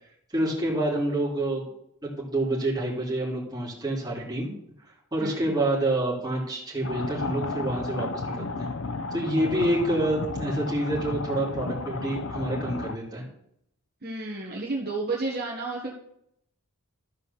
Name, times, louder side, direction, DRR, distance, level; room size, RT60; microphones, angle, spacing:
voice 1, 0.3-1.6 2.0-4.5 5.1-8.7 9.1-13.2, right 1 dB, 20° right, -4 dB, 2.9 m, -27 dB
voice 2, 5.2-5.6 14.0-16.0, right 3 dB, 45° right, -3 dB, 1.6 m, -31 dB
sound 1, 6.8-13.0, left 3 dB, 60° left, 0.7 m, -33 dB
13.0 x 4.5 x 6.9 m, 0.73 s
head